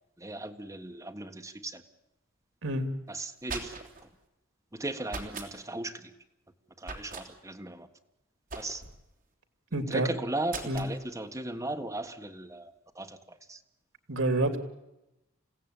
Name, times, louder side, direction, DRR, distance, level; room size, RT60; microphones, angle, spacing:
voice 1, 0.2-1.8 3.1-3.8 4.7-6.1 6.8-7.9 8.6-8.8 9.9-13.6, right 2 dB, 15° right, 4 dB, 1.6 m, -37 dB
sound 1, 3.2-4.1 5.1-5.5 6.8-7.3 8.5-9.0 10.5-10.9, right 4 dB, 40° right, 3.4 m, -40 dB
voice 2, 9.7-10.1 10.7-10.8 14.1-14.6, right 1 dB, 70° right, 7 dB, 2.8 m, -28 dB
29.5 x 16.5 x 9.1 m, 0.93 s
head